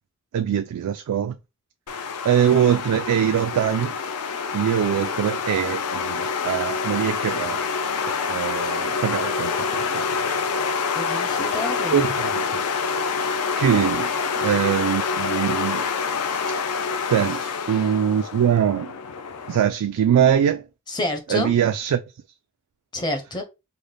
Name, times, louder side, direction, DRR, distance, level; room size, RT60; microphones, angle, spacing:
voice 1, 0.3-1.4 2.2-3.9 4.5-7.6 8.3-10.4 11.1-11.4 11.9-12.7 13.6-14.1 14.4-15.8 17.1-18.9 19.5-20.7 21.3-22.0, right 9 dB, 90° right, 0.3 m, -22 dB
sound 1, 1.9-19.6, left 5 dB, 80° left, 0.5 m, -26 dB
voice 2, 10.9-12.1 14.3-14.6 20.9-21.5 22.9-23.4, left 1 dB, 20° left, 0.6 m, -29 dB
3.8 x 2.1 x 3.3 m
head